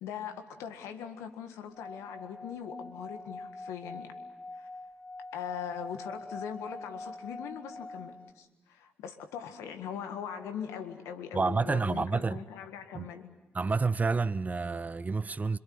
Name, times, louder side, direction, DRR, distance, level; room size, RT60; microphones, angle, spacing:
voice 1, 0.0-4.2 4.5-4.7 5.3-13.3, left 8 dB, 80° left, 1.7 m, -41 dB
Singing / Glass, 1.7-8.3, left 2 dB, 30° left, 1.6 m, -44 dB
voice 2, 11.3-12.4 12.9-13.1 13.5-15.6, right 4 dB, 35° right, 0.8 m, -29 dB
26.0 x 23.0 x 7.8 m
hypercardioid pair, 40°, 5 cm